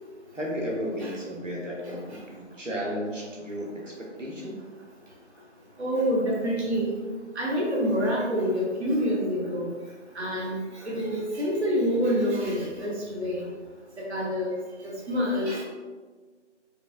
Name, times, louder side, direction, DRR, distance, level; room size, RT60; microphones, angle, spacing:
voice 1, 0.3-4.6, equal, 85° right, -2 dB, 1.2 m, -34 dB
voice 2, 1.8-2.2 5.8-7.0 7.3-9.7 10.1-13.5 14.0-14.6 14.8-15.6, equal, 60° right, -4 dB, 0.9 m, -27 dB
4.7 x 2.8 x 2.5 m, 1.4 s
figure-of-eight pair, 165°, 37 cm